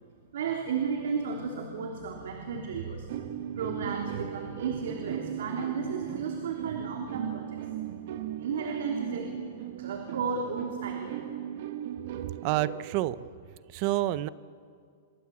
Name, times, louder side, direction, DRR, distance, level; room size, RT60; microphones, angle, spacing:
voice 1, 0.3-7.6 8.4-9.4 9.8-11.1, right 5 dB, 70° right, 2 dB, 3.3 m, -33 dB
sound 1, 3.1-13.3, right 10 dB, 55° right, 1.6 m, -37 dB
voice 2, 12.4-13.2 13.7-14.3, right 15 dB, 35° right, 17 dB, 0.7 m, -28 dB
28.5 x 22.5 x 8.5 m, 2.2 s
supercardioid pair, 170°, 0 cm